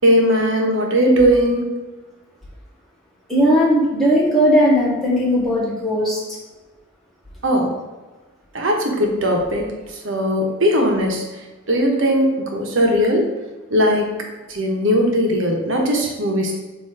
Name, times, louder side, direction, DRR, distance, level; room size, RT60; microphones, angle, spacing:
voice 1, 0.0-1.6 7.4-7.7 8.5-9.7 10.0-11.2 11.7-13.3 13.7-14.1 14.5-16.6, equal, 70° right, 1 dB, 1.2 m, -18 dB
voice 2, 3.3-6.2, equal, ahead, -7 dB, 1.5 m, -17 dB
7.2 x 2.9 x 4.8 m, 1.2 s
head